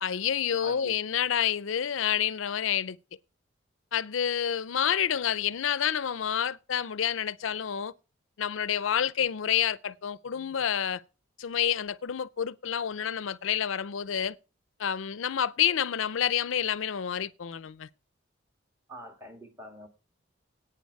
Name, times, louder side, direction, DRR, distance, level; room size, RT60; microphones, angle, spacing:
voice 1, 0.0-3.0 3.9-7.9 8.4-11.0 11.4-14.4 14.8-17.9, left 9 dB, 80° left, 0.5 m, -28 dB
voice 2, 0.6-1.0 1.3-1.4 18.9-19.9, right 1 dB, 15° right, 1.9 m, -46 dB
10.5 x 9.0 x 4.7 m
head